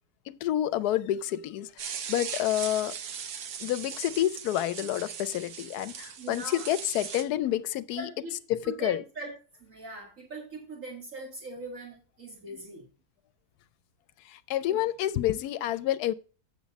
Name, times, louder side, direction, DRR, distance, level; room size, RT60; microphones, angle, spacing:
voice 1, 0.3-3.0 3.6-8.1 8.5-9.0 12.5-12.6 14.2-16.1, left 13 dB, 80° left, 1.1 m, -29 dB
sound 1, 1.8-7.2, right 7 dB, 90° right, 1.4 m, -39 dB
voice 2, 6.2-6.7 8.0-8.4 8.6-9.3 9.6-12.9 14.7-14.8, right 2 dB, 55° right, 2.4 m, -41 dB
8.0 x 7.0 x 4.0 m
omnidirectional pair, 1.7 m